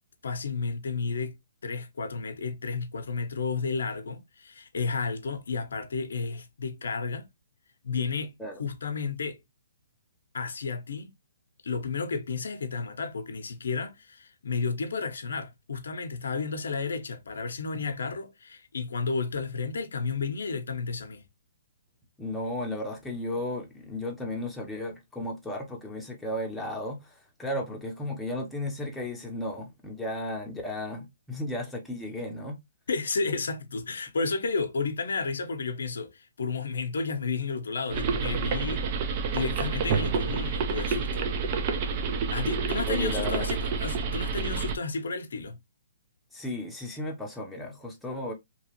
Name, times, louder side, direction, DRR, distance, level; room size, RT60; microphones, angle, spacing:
voice 1, 0.2-1.3 1.6-7.3 7.8-8.3 8.6-9.4 10.3-11.1 11.6-21.2 32.9-38.8 39.3-41.3 42.3-45.6, left 4 dB, 75° left, 0.7 m, -32 dB
voice 2, 22.2-32.6 42.9-43.5 46.3-48.3, left 1 dB, 5° left, 0.7 m, -34 dB
sound 1, 37.9-44.8, right 5 dB, 35° right, 0.5 m, -29 dB
2.9 x 2.4 x 2.9 m
hypercardioid pair, 145°, 0 cm